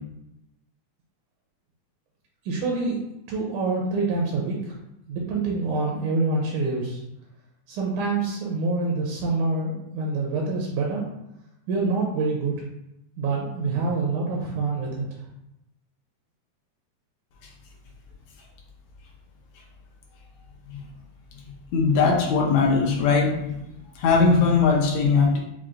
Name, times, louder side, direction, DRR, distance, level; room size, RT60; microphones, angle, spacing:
voice 1, 2.5-3.0 3.3-4.6 5.1-7.0 7.7-11.1 11.7-12.5 13.2-15.1, right 3 dB, 85° right, -2 dB, 2.1 m, -26 dB
voice 2, 21.7-23.5 24.0-25.4, left 4 dB, 75° left, -1 dB, 1.8 m, -20 dB
5.8 x 2.3 x 2.5 m, 0.85 s
omnidirectional pair, 3.5 m